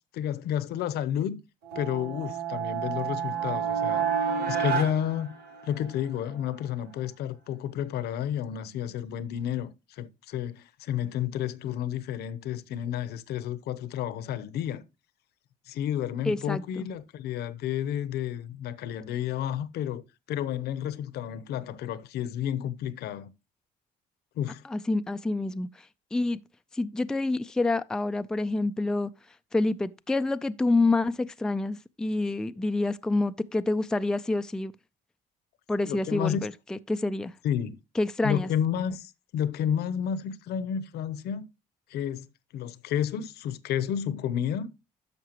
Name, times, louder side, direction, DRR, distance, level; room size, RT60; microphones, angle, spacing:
voice 1, 0.1-1.4 1.7-4.1 4.5-5.3 5.6-14.8 15.7-20.0 20.3-23.3 24.3-24.6 35.8-36.4 37.4-37.8 38.2-41.5 41.9-42.3 42.5-44.7, left 9 dB, 75° left, 0.8 m, -31 dB
sound 1, 1.6-6.0, right 7 dB, 80° right, 3.8 m, -30 dB
voice 2, 16.3-16.9 24.7-26.4 26.7-29.1 29.5-34.7 35.7-37.3 38.0-38.5, left 2 dB, 5° left, 0.3 m, -27 dB
11.0 x 6.7 x 2.9 m
cardioid pair, 110°, 17 cm